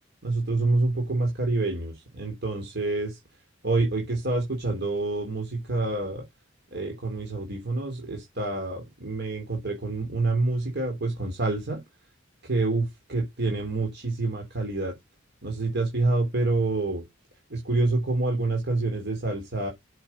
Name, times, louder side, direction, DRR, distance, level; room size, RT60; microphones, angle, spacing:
voice 1, 0.2-3.2 3.6-6.2 6.7-11.8 12.4-14.9 15.4-17.0 17.5-19.7, right 2 dB, 60° right, 3.4 m, -27 dB
7.7 x 7.2 x 5.6 m
head